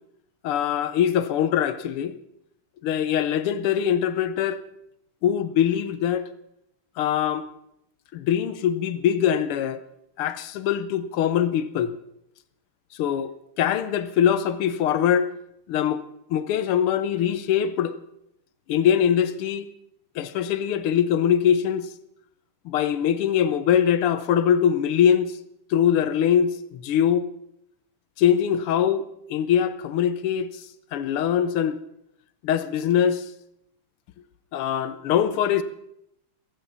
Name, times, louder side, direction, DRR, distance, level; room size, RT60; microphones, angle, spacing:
voice 1, 0.4-2.1 2.8-4.6 5.2-6.3 7.0-7.5 8.1-9.8 10.2-11.9 13.0-13.3 13.6-15.3 15.7-16.0 16.3-18.0 18.7-19.7 20.2-21.9 22.7-25.3 25.7-27.3 28.2-30.5 30.9-31.8 32.4-33.2 34.5-35.6, left 9 dB, 85° left, 1.8 m, -22 dB
16.0 x 15.5 x 5.5 m
omnidirectional pair, 2.4 m